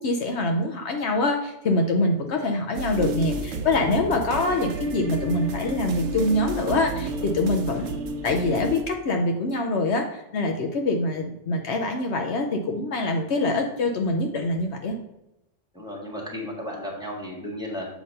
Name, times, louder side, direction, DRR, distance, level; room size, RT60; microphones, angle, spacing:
voice 1, 0.0-8.0 8.2-15.0, left 2 dB, 65° left, 3 dB, 0.9 m, -25 dB
sound 1, 2.7-8.8, right 2 dB, 75° right, 1.0 m, -31 dB
voice 2, 15.7-17.9, left 1 dB, 5° right, -3 dB, 1.6 m, -34 dB
7.1 x 3.0 x 5.2 m, 0.89 s
omnidirectional pair, 1.3 m